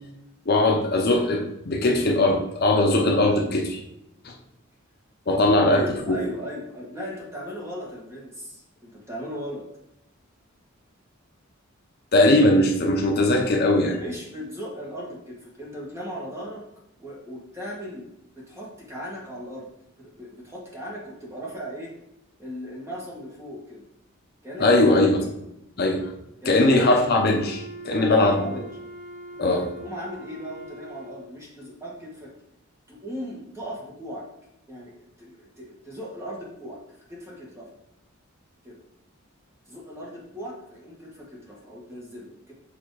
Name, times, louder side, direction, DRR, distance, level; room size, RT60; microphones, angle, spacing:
voice 1, 0.5-3.8 4.2-4.3 5.3-5.8 6.1-6.2 12.1-14.0 24.6-25.3 25.8-26.1 26.4-28.4 29.4-29.6, left 2 dB, 50° left, 2 dB, 0.7 m, -20 dB
voice 2, 5.3-9.6 14.0-16.6 17.0-18.0 18.3-19.7 20.0-21.9 22.4-23.8 24.4-24.7 26.4-26.7 27.9-28.7 29.4-32.3 32.9-34.3 34.7-36.8 37.1-37.7 38.6-38.8 39.7-42.5, equal, 15° right, -4 dB, 1.7 m, -37 dB
Wind instrument woodwind instrument, 27.1-31.4, right 1 dB, 45° right, 1.1 m, -42 dB
6.7 x 3.3 x 4.9 m, 0.83 s
head